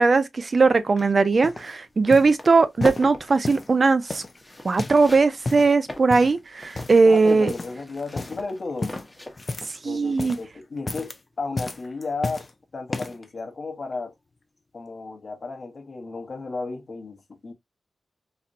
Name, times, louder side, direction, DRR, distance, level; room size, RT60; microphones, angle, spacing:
voice 1, 0.0-4.2 4.6-7.5 9.8-10.4, right 4 dB, 45° right, 0.4 m, -19 dB
sound 1, 1.0-1.7 2.1-2.4 2.8-3.7 4.1-5.1 5.3-5.7 6.1-6.4 6.7-7.2 7.5-7.8 8.1-8.4 8.8-9.8 10.1-10.5 10.8-11.2 11.6-12.5 12.9-13.3 13.9-14.0, left 3 dB, 35° left, 0.5 m, -33 dB
sound 2, 1.8-1.9 2.2-9.7, left 1 dB, 10° left, 0.8 m, -39 dB
voice 2, 7.1-8.9 9.8-12.4 12.7-14.1 14.7-17.5, left 3 dB, 55° left, 0.9 m, -33 dB
4.1 x 2.1 x 2.5 m
wide cardioid pair, 100°, 0 cm